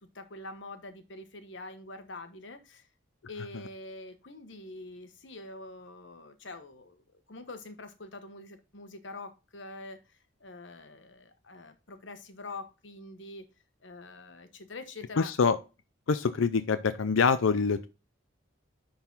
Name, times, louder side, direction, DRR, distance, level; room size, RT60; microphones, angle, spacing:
voice 1, 0.0-2.9 3.3-13.4 13.8-15.3, left 2 dB, 65° left, 9 dB, 1.2 m, -45 dB
voice 2, 15.2-15.6 16.1-17.9, left 5 dB, 80° left, 12 dB, 0.5 m, -25 dB
10.5 x 4.0 x 4.0 m, 0.30 s
head